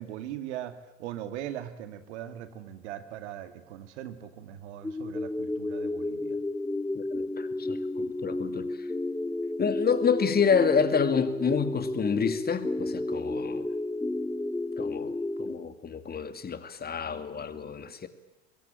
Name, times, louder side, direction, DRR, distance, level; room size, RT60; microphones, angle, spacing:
voice 1, 0.0-6.4, right 11 dB, 65° right, 10 dB, 2.2 m, -40 dB
sound 1, 4.8-15.6, left 2 dB, 5° left, 1.1 m, -32 dB
voice 2, 6.9-8.9 9.6-13.7 14.8-18.1, left 6 dB, 25° left, 10 dB, 2.3 m, -28 dB
24.0 x 22.0 x 9.0 m, 1.0 s
figure-of-eight pair, 75°, 37 cm